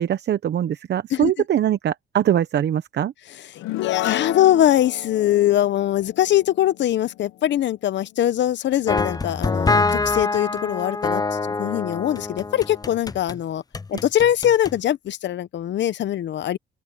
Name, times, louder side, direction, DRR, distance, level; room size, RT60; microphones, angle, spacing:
voice 1, 0.0-3.1, right 10 dB, 60° right, 1.0 m, -22 dB
voice 2, 3.3-13.6 13.9-16.6, left 12 dB, 65° left, 0.9 m, -22 dB
sound 1, 3.6-7.2, left 15 dB, 90° left, 1.1 m, -30 dB
sound 2, 8.9-13.4 13.7-14.8, left 3 dB, 20° left, 0.7 m, -25 dB
open air
cardioid pair, 90°, 20 cm